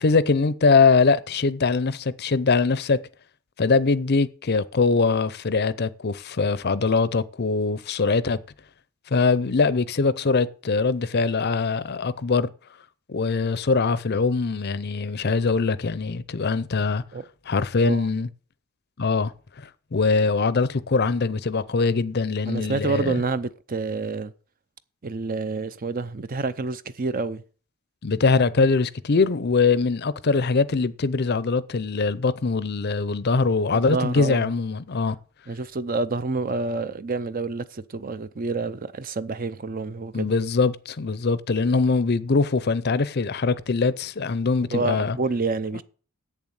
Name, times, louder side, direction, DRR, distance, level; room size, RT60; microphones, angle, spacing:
voice 1, 0.0-3.0 3.6-8.4 9.1-12.5 13.1-17.0 17.5-18.3 19.0-19.3 19.6-23.2 28.0-35.2 40.1-45.2, left 4 dB, 45° left, 0.6 m, -22 dB
voice 2, 22.5-24.3 25.0-27.4 33.7-34.5 35.5-40.3 44.7-45.8, right 3 dB, 40° right, 0.6 m, -28 dB
8.2 x 7.2 x 8.0 m
head